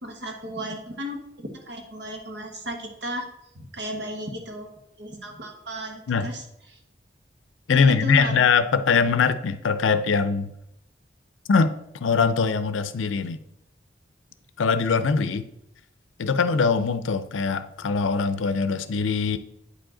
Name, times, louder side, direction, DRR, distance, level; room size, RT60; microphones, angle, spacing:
voice 1, 0.0-3.3 3.5-4.7 5.0-6.4 6.7-6.8 7.7-8.4, equal, 65° right, 3 dB, 1.3 m, -34 dB
voice 2, 7.7-10.5 11.5-11.7 12.0-13.4 14.6-15.5 16.2-19.4, left 5 dB, 90° left, 12 dB, 0.5 m, -22 dB
8.8 x 4.9 x 3.8 m, 0.82 s
head